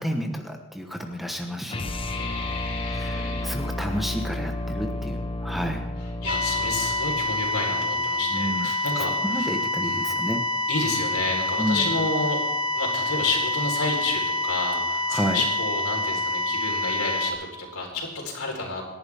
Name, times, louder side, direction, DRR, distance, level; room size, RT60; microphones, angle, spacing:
voice 1, 0.0-1.9 2.8-5.9 8.3-8.7 9.0-10.4 11.6-11.9 15.1-15.4, equal, ahead, 3 dB, 1.2 m, -30 dB
sound 1, 1.7-8.1, left 2 dB, 25° left, 0.8 m, -32 dB
voice 2, 2.1-3.5 6.2-9.5 9.8-10.1 10.7-12.4 12.7-18.9, left 3 dB, 85° left, -1 dB, 4.3 m, -30 dB
sound 2, 6.3-17.3, left 2 dB, 20° right, 1.5 m, -27 dB
26.5 x 11.0 x 3.6 m, 1.1 s
head